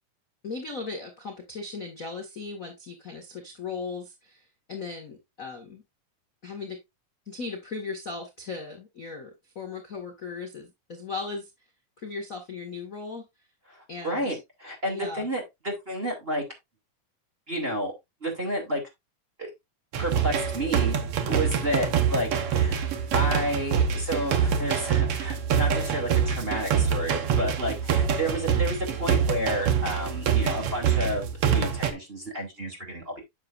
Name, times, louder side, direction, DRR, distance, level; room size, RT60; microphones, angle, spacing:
voice 1, 0.4-4.4 4.7-5.8 6.4-6.8 7.2-9.3 9.5-11.5 12.0-13.2 13.9-14.3 14.9-15.3, left 4 dB, 35° left, 2 dB, 1.3 m, -37 dB
voice 2, 14.0-16.4 17.5-17.9 18.2-18.8 19.4-19.5 20.0-21.0 21.3-33.2, right 1 dB, 20° right, 0 dB, 2.3 m, -31 dB
sound 1, 19.9-31.9, right 7 dB, 65° right, 1.6 m, -25 dB
9.7 x 6.7 x 2.5 m, 0.20 s
omnidirectional pair, 3.9 m